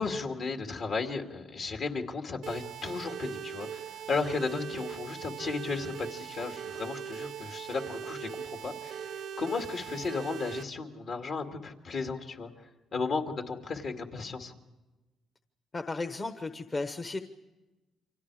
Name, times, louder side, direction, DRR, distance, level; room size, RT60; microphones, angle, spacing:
voice 1, 0.0-14.5, left 4 dB, 60° left, 4 dB, 2.4 m, -35 dB
sound 1, 2.4-10.6, right 8 dB, 70° right, 0.7 m, -40 dB
voice 2, 15.7-17.2, left 3 dB, 30° left, 8 dB, 1.0 m, -35 dB
29.0 x 24.5 x 4.9 m, 1.1 s
cardioid pair, 90°, 0 cm